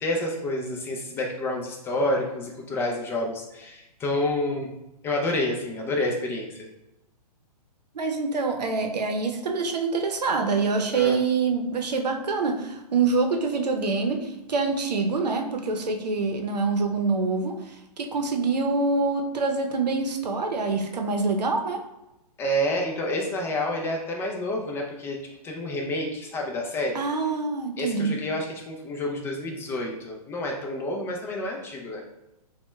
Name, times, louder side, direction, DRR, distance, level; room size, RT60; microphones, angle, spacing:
voice 1, 0.0-4.7 5.0-6.7 10.9-11.2 22.4-25.2 25.4-27.0 27.8-32.0, left 1 dB, 10° left, -1 dB, 0.3 m, -29 dB
voice 2, 7.9-21.8 26.9-28.2, right 4 dB, 90° right, 4 dB, 0.6 m, -25 dB
5.6 x 2.1 x 2.2 m, 0.92 s
hypercardioid pair, 135°, 20 cm